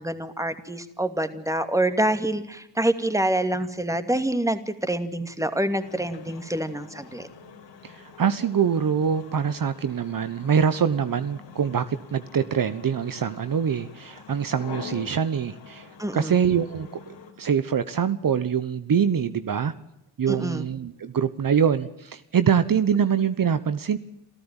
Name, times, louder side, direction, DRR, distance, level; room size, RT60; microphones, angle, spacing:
voice 1, 0.0-7.3 16.0-16.4 20.3-20.7, right 1 dB, 5° right, 9 dB, 2.6 m, -26 dB
sound 1, 5.7-17.3, left 6 dB, 85° left, 5.0 m, -45 dB
voice 2, 7.8-19.7 20.2-24.0, right 7 dB, 50° right, 12 dB, 1.2 m, -24 dB
27.5 x 14.0 x 9.1 m, 0.87 s
cardioid pair, 70°, 43 cm